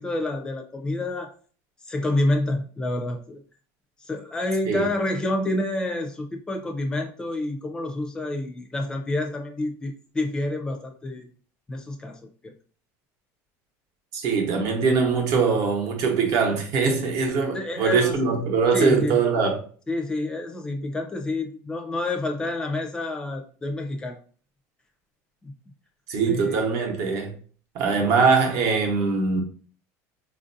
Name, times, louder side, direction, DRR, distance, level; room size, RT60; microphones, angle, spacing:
voice 1, 0.0-1.3 1.9-3.4 4.0-11.3 11.7-12.5 17.5-18.2 18.7-19.2 19.9-24.2 25.4-25.5 26.3-26.6, left 2 dB, 10° left, 0.5 m, -28 dB
voice 2, 14.1-19.6 26.1-27.3 27.7-29.4, right 5 dB, 55° right, 0.9 m, -22 dB
4.4 x 2.5 x 2.6 m
cardioid pair, 155°, 7 cm